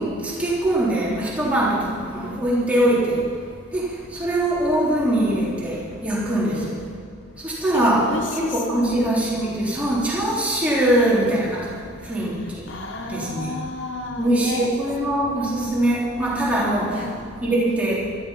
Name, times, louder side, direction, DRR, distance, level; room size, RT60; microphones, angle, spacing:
voice 1, 0.0-3.3 3.7-6.8 7.4-12.7 13.1-13.6 14.2-17.1 17.4-18.1, right 1 dB, 5° right, -7 dB, 3.5 m, -22 dB
voice 2, 7.7-9.0 12.7-14.7 16.9-17.4, left 2 dB, 55° left, 3 dB, 1.1 m, -32 dB
15.5 x 13.0 x 5.7 m, 2.1 s
head